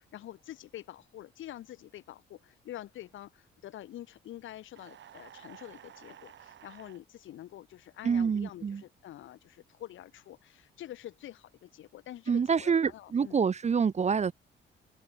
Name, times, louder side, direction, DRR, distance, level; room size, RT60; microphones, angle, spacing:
voice 1, 0.0-13.4, left 13 dB, 75° left, 2.9 m, -47 dB
sound 1, 4.7-7.0, right 10 dB, 65° right, 7.9 m, -52 dB
voice 2, 8.0-8.8 12.3-14.3, right 6 dB, 35° right, 0.9 m, -27 dB
open air
cardioid pair, 90°, 20 cm